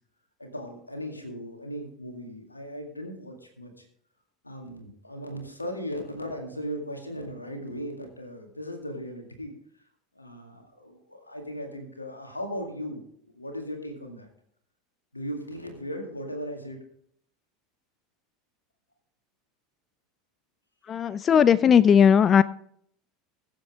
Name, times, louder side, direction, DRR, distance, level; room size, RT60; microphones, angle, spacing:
voice 1, 0.4-3.8 4.4-9.5 10.2-13.0 13.3-14.3 15.1-16.8, equal, 85° left, 4 dB, 2.1 m, -37 dB
voice 2, 20.9-22.4, left 7 dB, 30° left, 18 dB, 0.3 m, -17 dB
21.5 x 7.5 x 3.6 m, 0.67 s
figure-of-eight pair, 75°, 0 cm